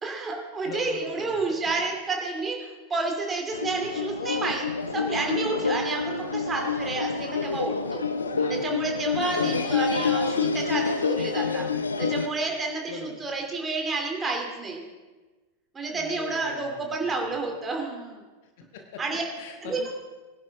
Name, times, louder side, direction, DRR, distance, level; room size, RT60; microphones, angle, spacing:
voice 1, 0.0-4.7 4.9-8.0 8.6-11.6 12.0-14.8 15.7-18.2 19.0-19.2 19.6-19.9, right 3 dB, 15° right, 1 dB, 2.7 m, -30 dB
voice 2, 0.6-1.6 8.3-8.7 9.2-9.6 12.9-13.2 15.9-17.4 18.6-19.0 19.4-19.9, left 5 dB, 50° left, 4 dB, 1.5 m, -41 dB
sound 1, 3.5-12.3, left 5 dB, 75° left, 0.7 m, -27 dB
20.5 x 11.0 x 3.6 m, 1.3 s
figure-of-eight pair, 90°, 0 cm